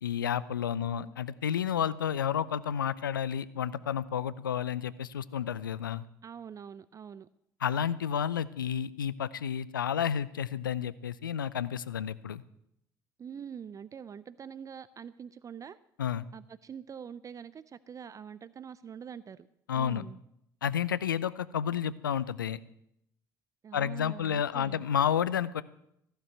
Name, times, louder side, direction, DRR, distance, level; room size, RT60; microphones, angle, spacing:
voice 1, 0.0-6.0 7.6-12.4 16.0-16.3 19.7-20.1 20.6-22.6 23.7-25.6, left 8 dB, 80° left, 18 dB, 0.5 m, -31 dB
voice 2, 0.8-1.1 6.2-7.3 13.2-15.8 16.3-19.5 19.7-20.2 23.6-24.8, right 7 dB, 30° right, 16 dB, 0.5 m, -45 dB
15.0 x 6.7 x 9.2 m, 0.78 s
figure-of-eight pair, 55°, 11 cm